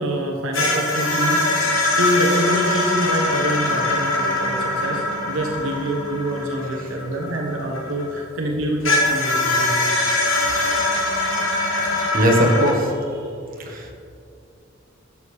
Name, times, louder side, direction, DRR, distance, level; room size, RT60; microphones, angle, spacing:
voice 1, 0.0-1.7 2.0-9.8, right 1 dB, 75° right, -1 dB, 1.0 m, -25 dB
sound 1, 0.5-8.2 8.8-12.7, left 2 dB, 80° left, 1.5 m, -22 dB
voice 2, 12.0-12.9 13.6-13.9, equal, 45° right, -1 dB, 1.4 m, -19 dB
11.0 x 6.9 x 3.4 m, 2.6 s
head